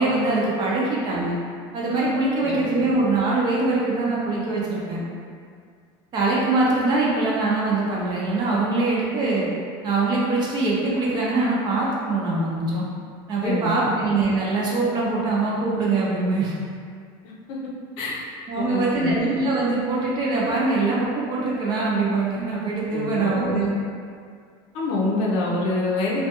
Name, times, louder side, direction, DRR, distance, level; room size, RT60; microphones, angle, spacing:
voice 1, 0.0-1.4 1.7-5.0 6.1-9.5 9.8-12.9 13.3-16.5 18.5-23.7 25.9-26.0, right 3 dB, 35° right, -5 dB, 0.6 m, -23 dB
voice 2, 2.4-2.8 13.4-13.9 17.5-17.6 18.0-18.2 18.6-19.4 22.9-23.7 24.7-26.3, left 2 dB, 60° left, -4 dB, 0.6 m, -26 dB
2.4 x 2.2 x 2.8 m, 2.1 s
cardioid pair, 150°, 12 cm